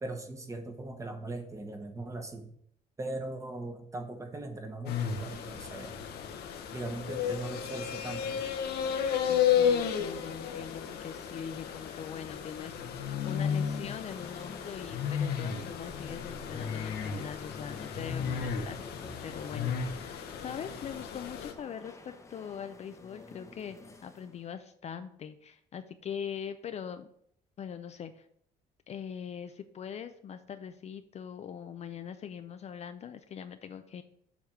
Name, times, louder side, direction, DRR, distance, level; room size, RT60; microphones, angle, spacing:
voice 1, 0.0-2.5 3.0-6.0 6.7-8.4, right 2 dB, 20° right, 5 dB, 1.1 m, -39 dB
sound 1, 4.9-21.5, left 8 dB, 70° left, 0.9 m, -33 dB
voice 2, 8.9-18.8 19.2-27.1 27.6-28.3 28.9-34.0, left 8 dB, 40° left, 9 dB, 0.4 m, -42 dB
sound 2, 14.0-24.5, left 2 dB, 15° left, 0.8 m, -50 dB
7.2 x 3.4 x 5.9 m, 0.68 s
cardioid pair, 110°, 17 cm